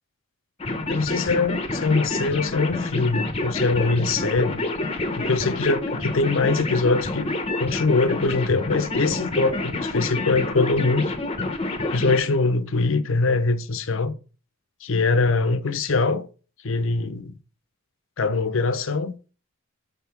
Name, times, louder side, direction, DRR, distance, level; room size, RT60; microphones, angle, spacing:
sound 1, 0.6-12.2, left 2 dB, 25° left, 0.7 m, -28 dB
voice 1, 0.9-4.6 5.1-11.0 11.9-14.1 14.8-16.3 16.6-17.4 18.2-19.1, left 3 dB, 60° left, 0.7 m, -23 dB
5.7 x 3.7 x 5.8 m
head